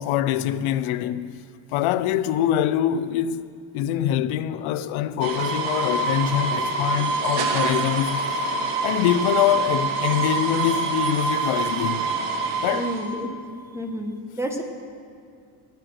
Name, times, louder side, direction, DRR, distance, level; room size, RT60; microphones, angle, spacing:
voice 1, 0.0-3.5 3.7-8.2 8.8-12.1 12.6-12.9, left 11 dB, 85° left, 0.6 m, -24 dB
sound 1, 5.2-13.1, right 4 dB, 80° right, 1.5 m, -26 dB
voice 2, 12.7-13.3 13.7-14.6, equal, 5° right, 1.1 m, -30 dB
20.0 x 8.2 x 6.3 m
cardioid pair, 165°, 48 cm